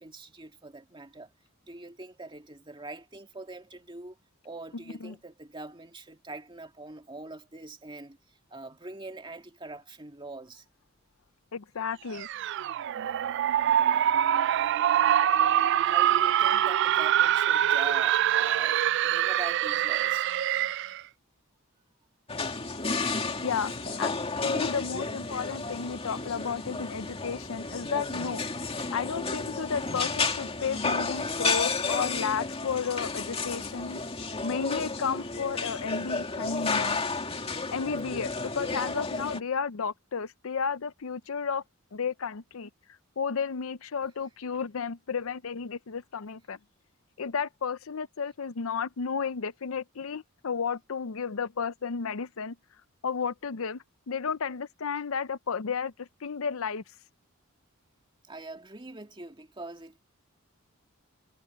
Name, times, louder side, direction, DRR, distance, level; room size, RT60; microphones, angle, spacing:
voice 1, 0.0-1.3 1.6-4.2 4.4-10.6 15.8-20.3 23.7-23.9 58.3-60.0, right 2 dB, 25° right, 2.2 m, -43 dB
voice 2, 11.5-12.3 23.4-23.7 24.0-24.1 24.4-28.4 28.9-34.0 34.4-37.0 37.7-41.6 41.9-42.7 43.2-46.6 47.2-52.5 53.0-56.8, left 6 dB, 80° left, 0.6 m, -32 dB
sound 1, 12.1-21.0, right 10 dB, 60° right, 0.3 m, -24 dB
sound 2, 22.3-39.4, left 3 dB, 30° left, 2.4 m, -32 dB
head